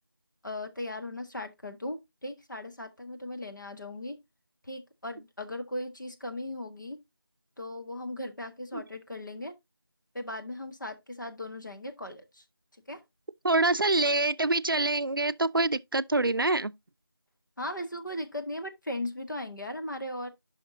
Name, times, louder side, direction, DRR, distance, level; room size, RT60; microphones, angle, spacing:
voice 1, 0.4-4.2 4.6-7.0 7.6-9.5 10.1-12.4 12.9-13.0 17.6-20.3, left 1 dB, 55° left, 1.5 m, -37 dB
voice 2, 13.4-16.7, right 2 dB, 65° right, 0.5 m, -25 dB
9.8 x 5.8 x 2.7 m
figure-of-eight pair, 180°, 12 cm